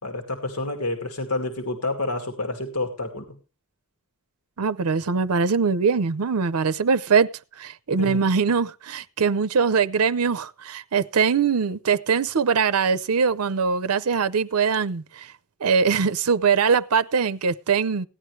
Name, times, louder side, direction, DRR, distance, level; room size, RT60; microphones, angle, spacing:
voice 1, 0.0-3.4 8.0-8.2, left 2 dB, 85° left, 2.3 m, -29 dB
voice 2, 4.6-7.3 7.6-15.3 15.6-18.1, right 5 dB, 90° right, 0.6 m, -22 dB
16.5 x 11.0 x 3.2 m
head